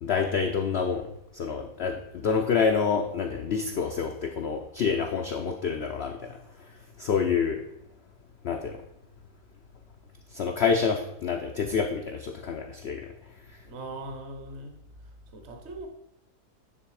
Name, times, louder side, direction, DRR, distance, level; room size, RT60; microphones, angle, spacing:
voice 1, 0.0-6.4 7.0-7.6 8.4-8.8 10.3-13.1, left 6 dB, 85° left, 4 dB, 0.5 m, -27 dB
voice 2, 13.7-14.8 15.3-15.9, right 2 dB, 50° right, 4 dB, 1.0 m, -40 dB
9.7 x 3.4 x 4.8 m, 0.81 s
omnidirectional pair, 1.8 m